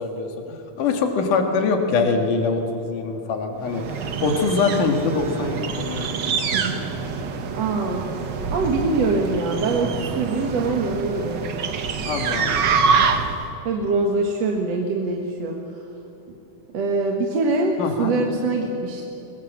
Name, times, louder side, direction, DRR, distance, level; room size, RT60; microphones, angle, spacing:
voice 1, 0.0-6.2 12.0-12.7 17.8-18.1, left 4 dB, 70° left, 4 dB, 3.5 m, -24 dB
sound 1, 3.7-13.5, right 5 dB, 75° right, 1.0 m, -25 dB
voice 2, 7.6-8.1 8.5-11.4 13.6-15.8 16.7-19.1, right 3 dB, 55° right, 1 dB, 2.4 m, -23 dB
23.0 x 22.5 x 7.4 m, 3.0 s
omnidirectional pair, 3.9 m